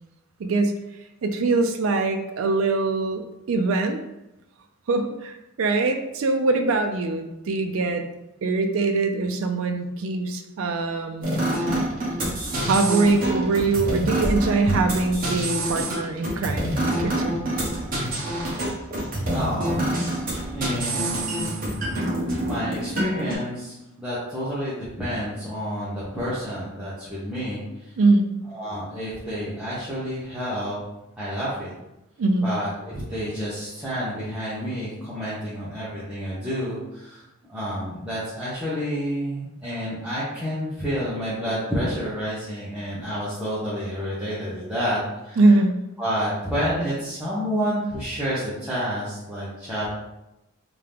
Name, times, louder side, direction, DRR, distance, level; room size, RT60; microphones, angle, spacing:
voice 1, 0.4-0.7 1.2-4.0 4.9-8.0 8.4-11.3 12.6-17.4 28.0-28.3 32.2-32.5 45.4-45.8, right 3 dB, 70° right, 5 dB, 0.4 m, -22 dB
sound 1, 11.2-23.4, right 1 dB, 40° right, 1.0 m, -26 dB
voice 2, 19.3-19.8 20.5-21.8 22.1-27.9 28.5-30.8 31.2-31.7 32.4-37.2 37.5-45.4 46.0-49.9, equal, 5° right, -11 dB, 0.8 m, -29 dB
3.6 x 2.8 x 3.4 m, 0.92 s
head